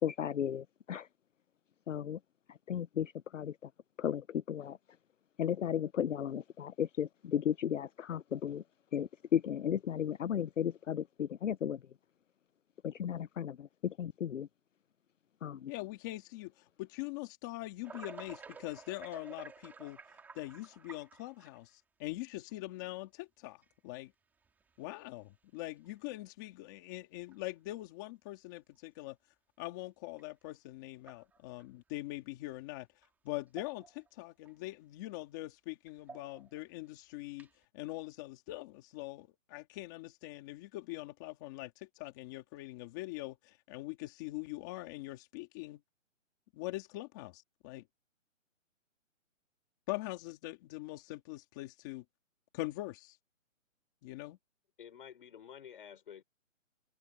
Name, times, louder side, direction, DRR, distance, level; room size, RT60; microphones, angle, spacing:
voice 1, 0.0-1.1 1.9-2.2 2.5-3.7 4.0-4.8 5.4-8.6 8.9-11.8 12.8-14.5 15.4-15.7, left 9 dB, 70° left, 0.8 m, -35 dB
voice 2, 15.7-24.1 24.8-29.2 29.6-32.9 33.2-37.5 37.7-45.8 46.5-47.8 49.9-52.0 52.5-53.2 54.0-54.4, left 19 dB, 15° left, 2.0 m, -43 dB
sound 1, 17.8-21.7 22.5-22.6 23.6-23.7 24.4-24.8 25.2-25.3 25.8-25.9 27.3-27.4 30.2-30.3 31.0-31.6 33.0-33.1 33.5-34.1 34.4-34.5 35.9-36.6 37.3-37.6, right 5 dB, 5° right, 4.1 m, -52 dB
voice 3, 54.8-56.2, left 8 dB, 40° left, 6.1 m, -50 dB
hypercardioid pair, 175°, 39 cm